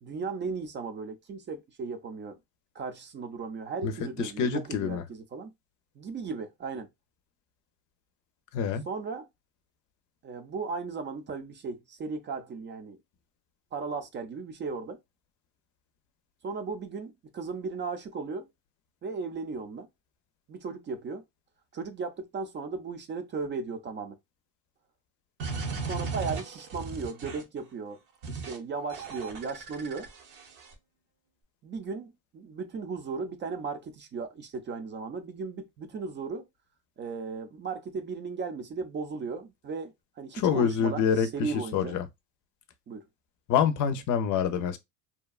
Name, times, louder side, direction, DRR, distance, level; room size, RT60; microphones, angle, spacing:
voice 1, 0.0-2.4 2.7-5.5 6.0-6.9 8.9-9.3 10.2-13.0 13.7-15.0 16.4-18.5 19.0-19.9 20.5-21.2 21.7-24.2 25.9-28.0 28.3-30.1 31.6-36.5 37.0-42.0 42.9-43.0, right 4 dB, 30° right, 0.5 m, -36 dB
voice 2, 4.2-5.0 8.5-8.8 40.3-42.1 43.5-44.8, left 7 dB, 55° left, 0.5 m, -26 dB
sound 1, 25.4-27.6 28.2-28.6 28.9-30.7, right 4 dB, 65° right, 0.9 m, -36 dB
2.7 x 2.2 x 2.3 m
supercardioid pair, 105°, 36 cm